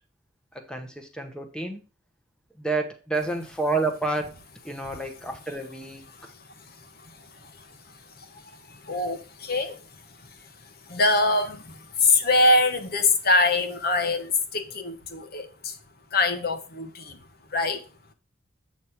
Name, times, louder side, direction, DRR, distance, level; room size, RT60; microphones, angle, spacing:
voice 1, 0.5-1.8 2.6-4.4 4.6-6.0, right 3 dB, 5° left, 1.0 m, -29 dB
voice 2, 6.1-15.8 16.1-17.2 17.5-17.9, left 2 dB, 50° left, 1.0 m, -25 dB
8.1 x 3.1 x 5.7 m
head